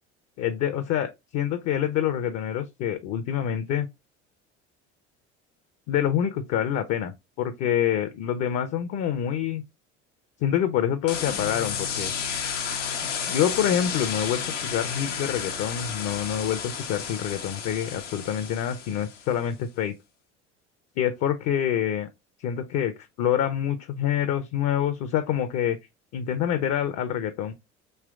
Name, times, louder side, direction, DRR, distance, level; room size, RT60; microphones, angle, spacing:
voice 1, 0.4-3.9 5.9-7.1 7.4-9.6 10.4-12.1 13.3-19.9 21.0-22.1 22.4-22.9 23.2-25.8 26.1-27.5, left 10 dB, 50° left, 0.5 m, -26 dB
sound 1, 11.1-19.3, left 7 dB, 90° left, 0.7 m, -32 dB
3.3 x 2.9 x 2.4 m
hypercardioid pair, 70°, 35 cm